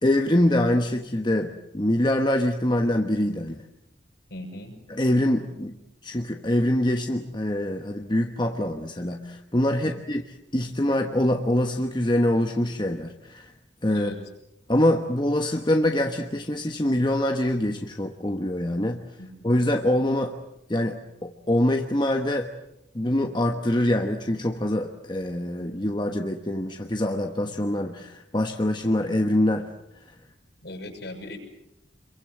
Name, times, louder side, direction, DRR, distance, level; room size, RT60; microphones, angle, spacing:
voice 1, 0.0-3.6 4.9-5.7 6.0-10.2 10.5-13.5 13.8-14.1 14.7-19.0 19.4-20.4 20.7-22.5 22.9-29.7, left 1 dB, 25° left, 4 dB, 1.2 m, -24 dB
voice 2, 4.3-4.7 9.8-9.9 13.9-14.2 19.2-19.5 30.6-31.4, left 1 dB, 65° left, 3 dB, 6.9 m, -39 dB
27.0 x 23.5 x 7.8 m, 0.83 s
head